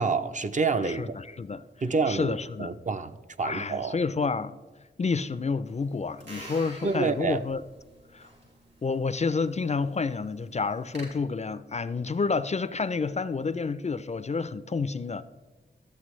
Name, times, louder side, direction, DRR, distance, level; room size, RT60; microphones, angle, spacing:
voice 1, 0.0-1.0 1.8-2.3 2.6-4.0 6.8-7.4, right 4 dB, 40° right, 0.5 m, -27 dB
voice 2, 0.8-1.6 2.1-2.7 3.4-4.6 5.0-7.6 8.1-8.3 8.8-15.2, left 4 dB, 35° left, 0.3 m, -29 dB
sound 1, 5.7-11.0, right 1 dB, 70° right, 3.1 m, -48 dB
12.5 x 7.9 x 3.1 m
wide cardioid pair, 85°, 19 cm